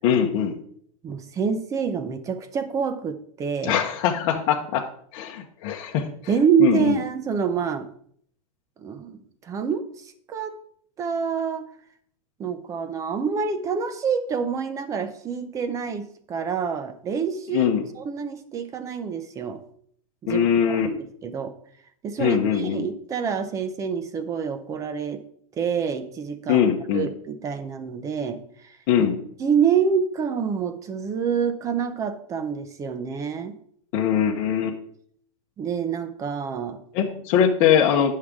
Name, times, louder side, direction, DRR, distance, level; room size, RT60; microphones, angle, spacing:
voice 1, 0.0-0.6 3.6-4.8 5.1-6.1 6.6-6.9 17.5-17.8 20.3-20.9 22.2-22.9 26.5-27.1 28.9-29.2 33.9-34.8 36.9-38.2, left 8 dB, 40° left, -1 dB, 0.9 m, -21 dB
voice 2, 1.0-3.8 6.3-7.9 8.8-10.5 11.0-11.7 12.4-19.6 20.2-20.5 20.8-21.5 22.0-25.2 25.6-26.7 26.9-28.8 29.4-33.6 35.6-36.8, right 6 dB, 20° right, 11 dB, 0.7 m, -27 dB
9.8 x 6.5 x 3.6 m, 0.64 s
supercardioid pair, 150°, 18 cm